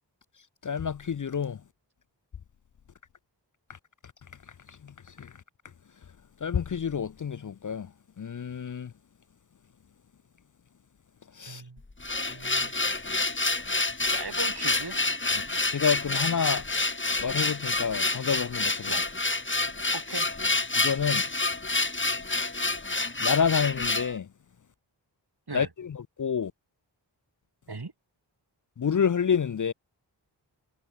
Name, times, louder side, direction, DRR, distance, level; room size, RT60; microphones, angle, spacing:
voice 1, 0.6-1.6 4.8-4.9 5.2-5.3 6.4-7.9 8.2-8.9 11.4-11.6 15.7-16.7 17.2-18.9 20.7-21.2 23.2-24.3 25.5-26.5 28.8-29.7, left 7 dB, 45° left, 0.5 m, -28 dB
voice 2, 11.4-11.8 12.2-12.8 14.1-15.0 18.9-19.0 19.9-20.3 25.5-25.7 27.7-27.9, right 3 dB, 55° right, 6.0 m, -38 dB
sound 1, 11.8-24.1, left 3 dB, 25° left, 1.6 m, -28 dB
wide cardioid pair, 45°, 44 cm